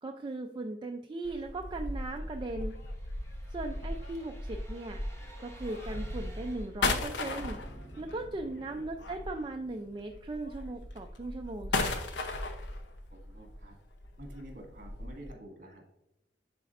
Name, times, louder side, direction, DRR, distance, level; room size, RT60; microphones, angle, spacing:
voice 1, 0.0-2.8 3.5-5.0 5.4-7.6 8.0-11.9, right 2 dB, 25° right, 3 dB, 0.4 m, -38 dB
sound 1, 1.2-9.7 10.0-15.3, left 2 dB, 75° left, 0.7 m, -37 dB
sound 2, 2.1-6.9 7.1-12.0 12.4-12.5, right 1 dB, 15° left, 1.3 m, -54 dB
voice 2, 13.1-13.8 14.2-15.8, right 1 dB, 50° right, 2 dB, 1.9 m, -49 dB
10.5 x 4.3 x 2.5 m, 0.86 s
head